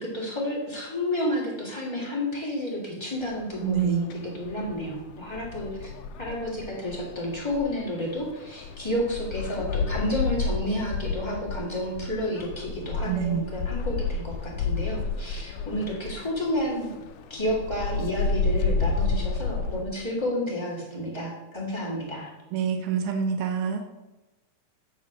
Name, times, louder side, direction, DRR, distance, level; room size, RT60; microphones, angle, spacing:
voice 1, 0.0-5.9 6.2-16.9 17.3-22.3, left 1 dB, 10° left, -4 dB, 1.6 m, -31 dB
sound 1, 3.2-19.8, left 4 dB, 80° left, 1.5 m, -31 dB
voice 2, 3.6-4.0 13.1-13.4 22.5-23.9, right 7 dB, 90° right, 6 dB, 1.3 m, -26 dB
8.2 x 4.5 x 6.1 m, 1.0 s
omnidirectional pair, 3.4 m